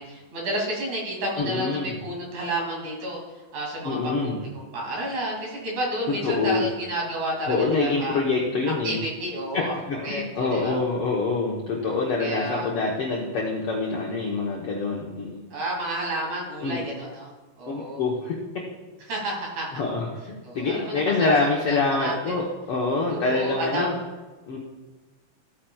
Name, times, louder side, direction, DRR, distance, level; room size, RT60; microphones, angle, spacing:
voice 1, 0.0-3.2 3.5-8.2 8.8-9.7 10.0-10.8 12.2-12.7 15.5-17.3 17.6-18.0 19.1-19.8 20.4-21.3 21.7-22.4 23.1-24.0, right 1 dB, 55° right, -2 dB, 3.8 m, -31 dB
voice 2, 1.4-2.0 3.8-4.4 6.2-6.6 7.5-9.0 9.5-15.4 16.6-16.8 17.7-18.4 19.7-23.9 24.5-24.6, left 3 dB, 90° left, -2 dB, 1.3 m, -26 dB
15.5 x 8.8 x 2.3 m, 1.3 s
omnidirectional pair, 4.1 m